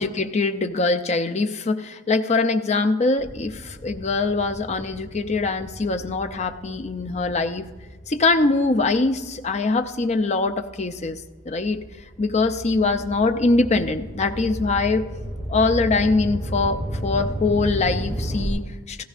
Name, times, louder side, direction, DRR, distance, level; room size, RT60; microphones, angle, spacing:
voice 1, 0.0-7.7 8.1-11.2 11.5-11.8 12.2-15.0 15.5-19.0, left 3 dB, 35° left, 8 dB, 0.5 m, -23 dB
sound 1, 3.2-9.9 10.5-18.5, right 1 dB, 5° right, 4.5 m, -33 dB
15.5 x 14.5 x 2.5 m, 1.3 s
head